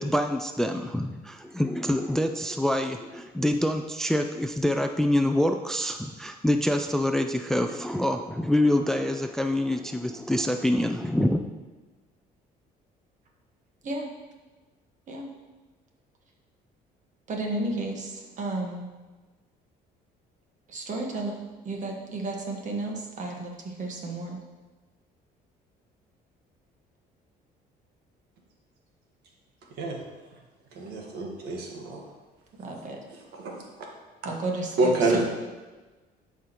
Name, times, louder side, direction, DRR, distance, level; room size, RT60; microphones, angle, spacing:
voice 1, 0.0-11.4, left 1 dB, 5° left, 6 dB, 0.3 m, -26 dB
voice 2, 17.3-18.9 20.7-21.4 21.6-24.4 32.5-33.0 34.2-35.2, right 2 dB, 45° right, 1 dB, 1.5 m, -33 dB
voice 3, 30.8-32.0 33.4-33.6 34.8-35.2, right 2 dB, 75° right, 0 dB, 1.5 m, -26 dB
11.5 x 4.9 x 3.0 m, 1.2 s
cardioid pair, 110°, 17 cm